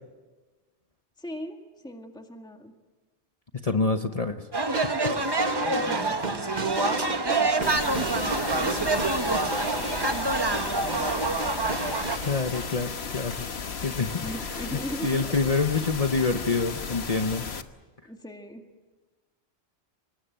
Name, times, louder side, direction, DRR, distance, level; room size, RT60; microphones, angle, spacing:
voice 1, 1.2-2.7 5.7-10.1 10.5-11.3 14.2-15.4 15.7-15.9 18.1-18.6, equal, 5° left, 4 dB, 1.9 m, -40 dB
voice 2, 3.6-4.4 12.1-13.4 13.8-14.2 15.0-17.5, left 4 dB, 35° left, 7 dB, 0.9 m, -26 dB
sound 1, 4.5-12.2, right 3 dB, 25° right, 1.0 m, -27 dB
sound 2, 4.7-12.7, right 2 dB, 45° right, 1.1 m, -34 dB
sound 3, 7.6-17.6, left 5 dB, 70° left, 1.4 m, -35 dB
25.0 x 20.5 x 9.0 m, 1.2 s
omnidirectional pair, 1.1 m